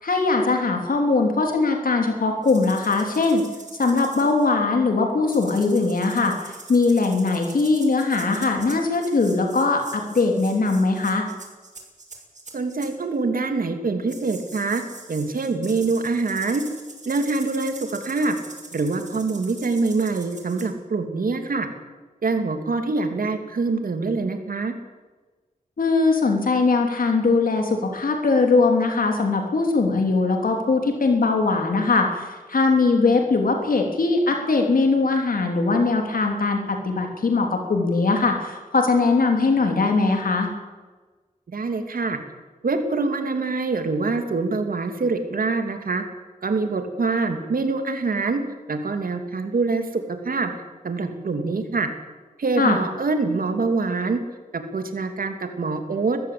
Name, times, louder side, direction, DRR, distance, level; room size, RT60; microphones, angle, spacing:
voice 1, 0.0-3.4 3.8-11.3 25.8-40.5 52.6-52.8, left 3 dB, 80° left, 3 dB, 3.2 m, -21 dB
sound 1, 2.4-4.5 5.3-12.9 14.1-20.7, right 3 dB, 55° right, 6.8 m, -43 dB
voice 2, 12.5-14.8 15.1-16.6 17.0-18.4 18.7-21.7 22.2-24.7 41.5-42.2 42.6-46.0 46.4-48.4 48.7-50.5 50.8-51.9 52.4-54.2 54.5-56.2, right 3 dB, 80° right, 6 dB, 2.8 m, -25 dB
21.5 x 15.0 x 8.7 m, 1.3 s
wide cardioid pair, 65°, 14 cm